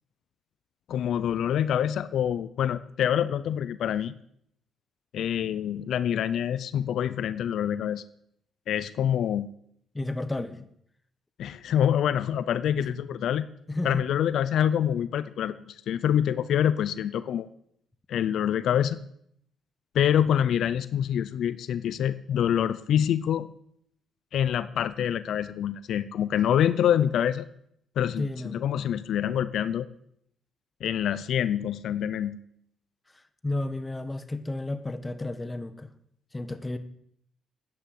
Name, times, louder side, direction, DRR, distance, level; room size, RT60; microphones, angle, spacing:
voice 1, 0.9-4.1 5.1-8.0 8.7-9.5 11.4-13.5 13.8-17.5 18.1-19.0 19.9-23.5 24.3-27.5 28.0-29.9 30.8-32.4, left 9 dB, 70° left, 14 dB, 0.7 m, -26 dB
voice 2, 9.9-10.7 12.8-12.9 13.7-14.1 28.2-28.6 33.4-35.9 36.3-36.8, left 2 dB, 15° left, 11 dB, 1.2 m, -32 dB
12.0 x 9.7 x 7.8 m, 0.70 s
cardioid pair, 90°, 0 cm